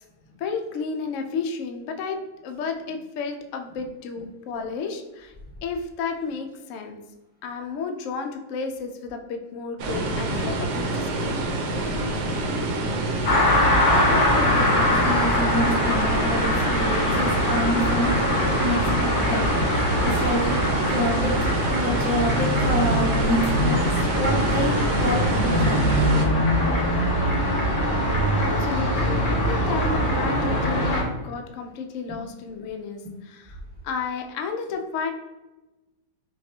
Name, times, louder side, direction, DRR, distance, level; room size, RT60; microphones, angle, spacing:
voice 1, 0.4-5.3 5.6-7.0 7.4-11.4 28.1-33.6 33.8-35.1, left 5 dB, 90° left, 5 dB, 0.6 m, -32 dB
sound 1, 9.8-26.3, right 2 dB, 70° right, 1.1 m, -27 dB
sound 2, 13.2-31.0, left 1 dB, 40° left, 0.8 m, -23 dB
voice 2, 13.9-19.5 20.0-20.6 20.9-21.3 21.7-23.8 24.2-26.0 32.1-32.2, equal, 5° left, -7 dB, 1.2 m, -27 dB
5.7 x 2.4 x 2.7 m, 1.0 s
omnidirectional pair, 1.9 m